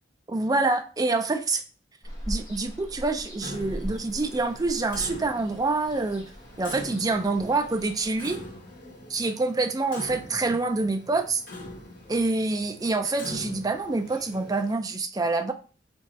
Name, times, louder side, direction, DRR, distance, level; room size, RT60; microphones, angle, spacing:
voice 1, 0.3-1.6 2.3-6.3 6.6-8.4 9.1-11.4 12.1-15.5, right 3 dB, 20° right, 7 dB, 0.5 m, -26 dB
Ocean, 2.0-8.3, equal, 20° left, 1.2 m, -40 dB
Clock, 3.4-14.7, left 1 dB, 50° left, 1.2 m, -43 dB
3.8 x 3.4 x 4.1 m, 0.37 s
head